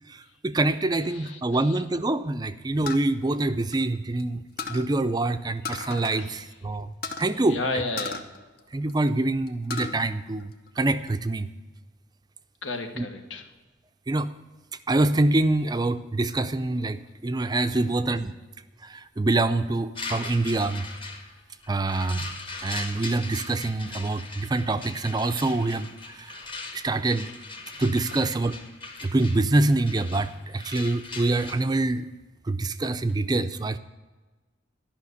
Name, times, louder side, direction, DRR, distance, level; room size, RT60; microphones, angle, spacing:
voice 1, 0.1-4.4 4.7-7.6 8.7-11.5 13.0-13.1 14.1-14.3 14.9-18.3 18.8-20.9 21.7-22.2 22.6-26.4 26.7-27.3 27.8-28.6 29.0-32.0 32.5-33.8, right 2 dB, 20° right, 11 dB, 0.4 m, -25 dB
voice 2, 1.1-1.8 6.2-6.4 7.5-8.2 12.6-13.5 17.8-17.9 28.1-28.2, left 2 dB, 85° left, 6 dB, 1.4 m, -33 dB
sound 1, 2.9-4.2 4.6-4.9 5.6-6.3 6.5-6.6 7.0-7.3 8.0-9.1 9.5-10.0 10.4-11.1, left 4 dB, 55° left, 0.8 m, -35 dB
sound 2, 20.0-31.5, left 3 dB, 25° left, 1.1 m, -40 dB
12.0 x 5.8 x 8.2 m, 1.2 s
head